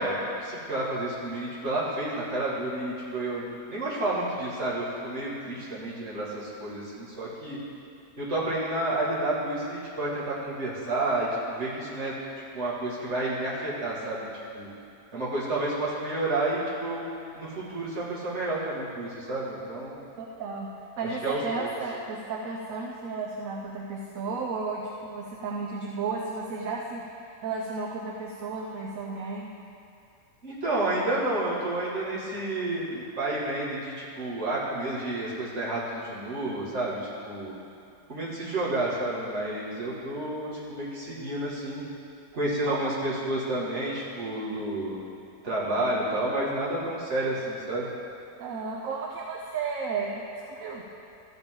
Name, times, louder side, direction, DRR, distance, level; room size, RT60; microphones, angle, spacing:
voice 1, 0.0-7.6 8.2-12.1 12.5-14.3 14.5-14.7 15.1-17.1 17.3-20.0 21.2-21.7 30.4-37.5 38.1-41.8 42.3-45.0 45.4-47.9, right 1 dB, 45° right, -7 dB, 2.3 m, -30 dB
voice 2, 20.2-29.5 42.6-42.8 48.4-50.8, right 4 dB, 65° right, -1 dB, 1.1 m, -33 dB
13.5 x 8.0 x 3.8 m, 2.6 s
omnidirectional pair, 1.7 m